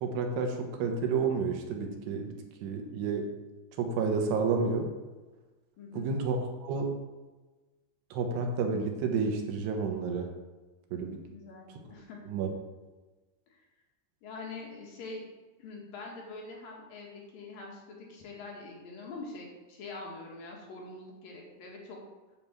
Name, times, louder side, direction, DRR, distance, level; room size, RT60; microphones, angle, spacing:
voice 1, 0.0-2.3 2.6-3.3 3.8-4.9 5.9-6.9 8.1-10.3 10.9-11.2 12.3-12.5, right 4 dB, 80° right, 3 dB, 3.2 m, -30 dB
voice 2, 5.8-6.1 11.3-12.2 13.5-13.6 14.2-15.2 15.6-22.0, left 3 dB, 60° left, -2 dB, 3.2 m, -44 dB
9.5 x 5.3 x 7.3 m, 1.2 s
omnidirectional pair, 4.9 m